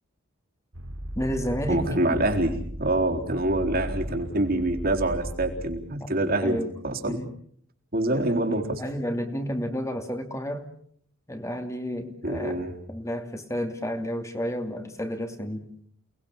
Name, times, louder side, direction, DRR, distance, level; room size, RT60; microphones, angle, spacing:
sound 1, 0.7-5.8, equal, 90° right, 3.5 m, -36 dB
voice 1, 1.1-1.9 6.0-6.1 6.4-6.7 7.0-7.3 8.1-10.7 11.3-12.6 12.9-15.7, equal, 15° left, 6 dB, 2.6 m, -31 dB
voice 2, 1.7-6.6 6.8-7.2 7.9-8.8 12.2-12.7, right 1 dB, 45° right, 2 dB, 4.1 m, -25 dB
29.5 x 20.0 x 7.3 m, 0.63 s
head